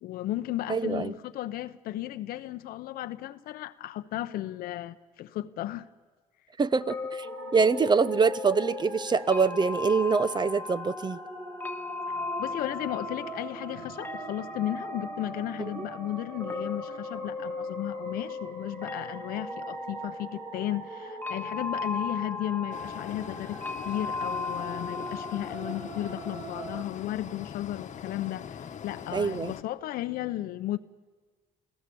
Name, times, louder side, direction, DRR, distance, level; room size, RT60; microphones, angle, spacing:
voice 1, 0.0-5.9 12.1-30.8, left 14 dB, 75° left, 0.8 m, -34 dB
voice 2, 0.7-1.1 6.6-7.3 7.5-11.2 15.8-15.9 29.1-29.5, right 5 dB, 30° right, 0.7 m, -25 dB
sound 1, 6.8-25.5, left 3 dB, 15° left, 0.9 m, -37 dB
sound 2, 7.2-26.8, right 2 dB, 60° right, 6.0 m, -43 dB
sound 3, 22.7-29.6, left 8 dB, 50° left, 1.2 m, -42 dB
29.0 x 16.0 x 7.0 m
cardioid pair, 85°, 15 cm